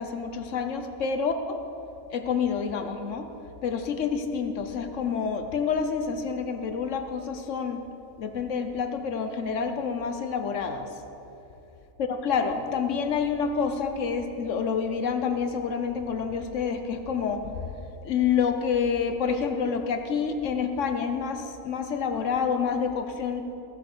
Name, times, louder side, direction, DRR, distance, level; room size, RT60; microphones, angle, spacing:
voice 1, 0.0-1.6 2.1-3.3 3.6-7.8 8.2-10.9 12.0-17.7 18.0-23.4, left 6 dB, 65° left, 7 dB, 1.0 m, -28 dB
15.0 x 6.5 x 6.6 m, 2.8 s
omnidirectional pair, 1.5 m